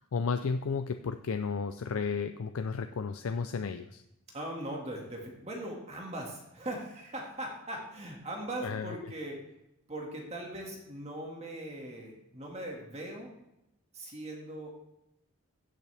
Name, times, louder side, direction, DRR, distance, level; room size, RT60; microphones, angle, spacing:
voice 1, 0.0-4.0 8.6-9.0, left 5 dB, 75° left, 8 dB, 0.5 m, -33 dB
voice 2, 4.3-9.4 9.9-13.3 13.9-14.8, right 1 dB, 30° right, 0 dB, 2.0 m, -40 dB
15.5 x 8.3 x 3.4 m, 0.85 s
head